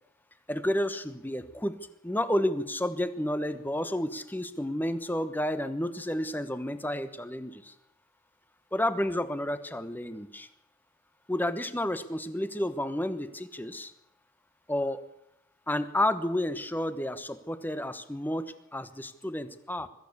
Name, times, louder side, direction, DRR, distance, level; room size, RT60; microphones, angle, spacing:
voice 1, 0.5-7.7 8.7-10.5 11.3-13.9 14.7-15.0 15.7-19.9, left 1 dB, 10° left, 11 dB, 1.1 m, -31 dB
22.0 x 14.5 x 8.5 m, 0.80 s
head